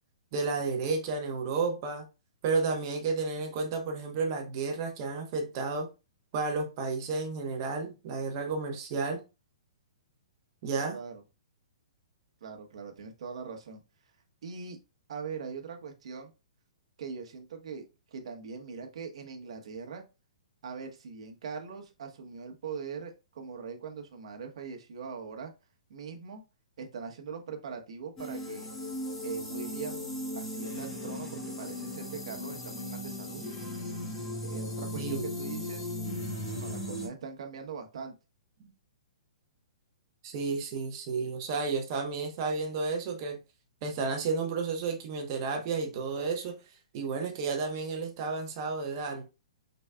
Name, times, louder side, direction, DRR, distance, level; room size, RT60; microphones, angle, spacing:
voice 1, 0.3-2.0 2.4-5.9 6.3-9.2 10.6-11.0 34.9-35.3 38.6-38.7 40.2-43.4 43.8-46.6 46.9-49.2, right 4 dB, 35° right, 1.0 m, -32 dB
voice 2, 10.9-11.2 12.4-13.8 14.4-14.8 15.1-16.3 17.0-17.9 18.1-20.0 20.6-25.5 25.9-26.4 26.8-28.7 29.2-30.0 30.3-33.5 34.4-36.0 36.4-38.1, right 5 dB, 65° right, 1.1 m, -41 dB
sound 1, 28.2-37.1, left 1 dB, 15° left, 1.4 m, -37 dB
4.6 x 4.0 x 2.3 m
hypercardioid pair, 160°, 4 cm